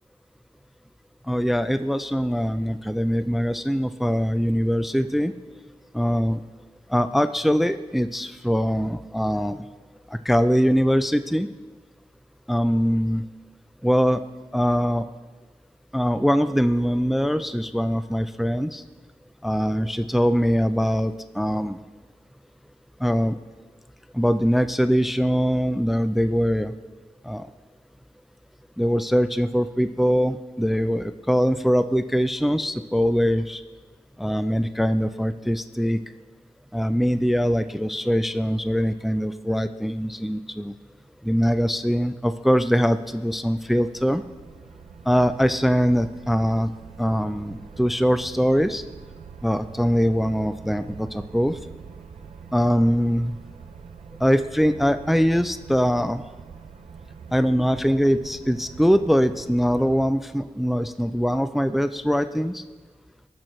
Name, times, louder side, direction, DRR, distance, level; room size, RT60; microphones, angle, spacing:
voice 1, 1.3-5.3 5.9-6.4 6.9-9.6 10.1-11.5 12.5-13.2 13.8-14.2 14.5-15.0 15.9-18.8 19.4-21.8 23.0-23.4 24.1-26.7 27.3-27.5 28.8-33.6 34.2-36.0 36.7-40.7 41.2-44.2 45.1-46.7 47.0-48.8 49.4-51.6 52.5-53.4 54.2-56.2 57.3-62.6, equal, ahead, 12 dB, 0.4 m, -22 dB
sound 1, 42.6-60.1, right 6 dB, 80° right, 0.5 m, -44 dB
16.0 x 6.0 x 3.1 m, 1.3 s
cardioid pair, 45°, 12 cm